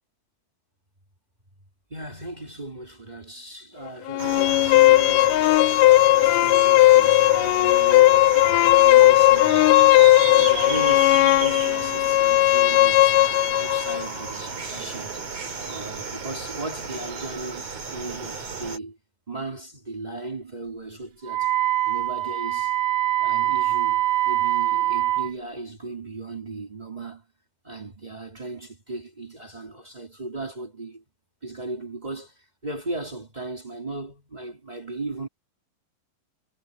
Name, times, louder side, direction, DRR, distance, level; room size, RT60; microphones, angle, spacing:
voice 1, 1.9-5.5 6.1-8.2 8.6-9.8 10.2-13.3 13.6-15.3 15.6-19.0 19.3-21.6 21.8-22.8 23.2-27.3 27.6-31.0 31.4-35.3, right 2 dB, 20° right, 1.2 m, -37 dB
sound 1, 4.1-14.1, left 17 dB, 80° left, 1.9 m, -17 dB
sound 2, 4.2-18.8, right 5 dB, 45° right, 4.4 m, -34 dB
Wind instrument woodwind instrument, 21.3-25.3, right 14 dB, 65° right, 1.7 m, -23 dB
omnidirectional pair, 4.2 m